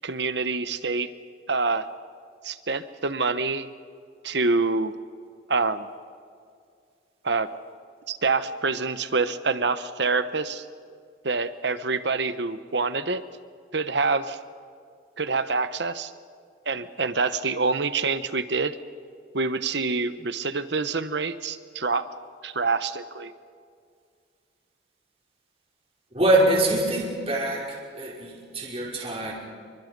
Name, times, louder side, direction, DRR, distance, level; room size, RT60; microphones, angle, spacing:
voice 1, 0.0-1.1 1.5-1.9 2.4-3.7 4.2-4.9 5.5-5.9 7.2-7.5 8.1-10.6 11.2-13.2 13.7-14.4 15.2-16.1 16.7-18.8 19.3-22.1 22.4-23.3, right 4 dB, 70° right, 12 dB, 1.1 m, -26 dB
voice 2, 26.1-29.3, right 1 dB, 30° right, -3 dB, 5.2 m, -24 dB
28.5 x 24.0 x 5.4 m, 2.2 s
head